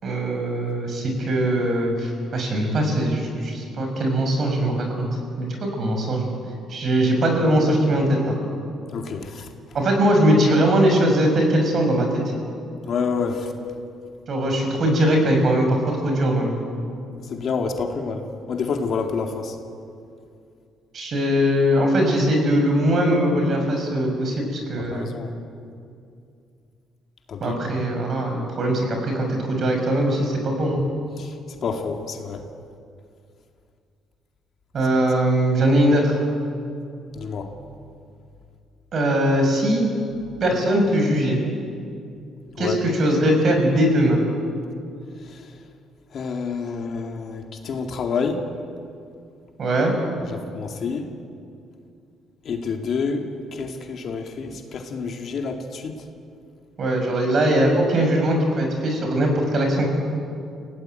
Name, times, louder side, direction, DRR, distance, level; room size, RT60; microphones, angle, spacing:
voice 1, 0.0-5.1 5.4-6.2 6.7-8.4 9.7-12.1 14.3-16.6 20.9-25.1 27.4-30.8 34.7-36.2 38.9-39.8 40.4-41.4 42.6-44.2 49.6-49.9 56.8-59.9, right 1 dB, 40° right, 3 dB, 6.0 m, -21 dB
voice 2, 8.9-9.5 12.9-13.5 17.3-19.5 24.8-25.3 27.3-27.6 31.2-31.3 31.6-32.4 37.1-37.5 42.6-42.8 45.3-45.4 46.1-48.4 50.3-51.1 52.4-53.3 53.5-56.0, left 5 dB, 45° left, 3 dB, 2.3 m, -28 dB
29.5 x 17.5 x 9.1 m, 2.5 s
cardioid pair, 150°, 0 cm